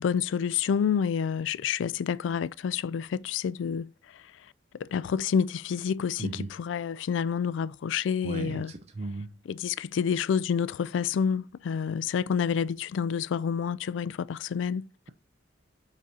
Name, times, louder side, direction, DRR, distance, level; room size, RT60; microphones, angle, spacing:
voice 1, 0.0-4.3 4.7-8.7 9.4-14.9, left 7 dB, 80° left, 0.3 m, -28 dB
voice 2, 8.2-9.3, right 2 dB, 35° right, 0.5 m, -35 dB
5.3 x 5.1 x 4.0 m
head